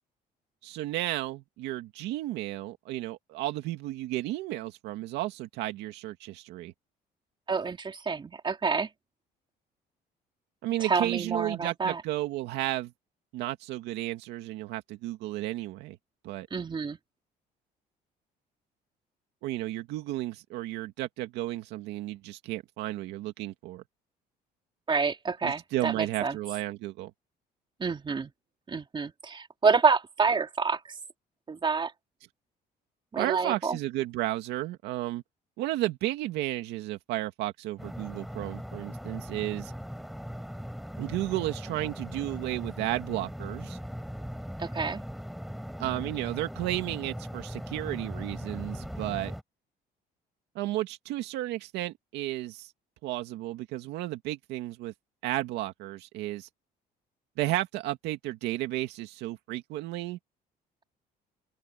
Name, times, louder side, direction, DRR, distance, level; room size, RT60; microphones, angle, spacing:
voice 1, 0.6-6.7 10.6-12.9 13.3-16.0 16.2-16.5 19.4-23.8 25.4-27.1 33.2-35.2 35.6-39.7 41.0-43.8 45.8-49.3 50.5-52.7 53.0-54.9 55.2-56.5 57.4-60.2, right 16 dB, 90° right, 2.2 m, -33 dB
voice 2, 7.5-8.9 10.8-12.0 16.5-17.0 24.9-26.4 27.8-28.3 28.7-30.8 31.5-31.9 33.1-33.8 44.6-45.0, right 5 dB, 30° right, 3.7 m, -28 dB
sound 1, 37.8-49.4, equal, ahead, 5.1 m, -39 dB
open air
cardioid pair, 110°, 17 cm